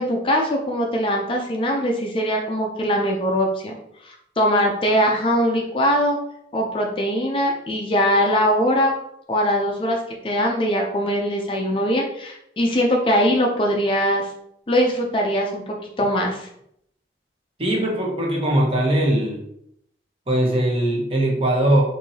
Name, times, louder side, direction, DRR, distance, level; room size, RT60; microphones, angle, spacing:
voice 1, 0.0-3.7 4.0-6.2 6.5-8.9 9.3-10.0 10.2-14.3 14.7-16.5, equal, 30° left, 1 dB, 0.4 m, -21 dB
voice 2, 17.6-19.4 20.3-21.8, right 1 dB, 30° right, -1 dB, 0.8 m, -20 dB
4.5 x 2.6 x 2.7 m, 0.75 s
head